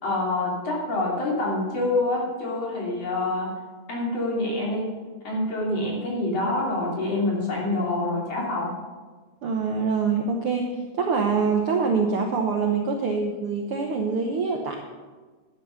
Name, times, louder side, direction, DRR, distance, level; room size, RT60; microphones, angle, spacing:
voice 1, 0.0-3.5 3.9-4.9 5.2-8.7, left 2 dB, 50° left, -3 dB, 3.9 m, -26 dB
voice 2, 9.4-14.8, right 5 dB, 65° right, 2 dB, 1.4 m, -25 dB
11.5 x 10.5 x 5.8 m, 1.4 s
omnidirectional pair, 3.6 m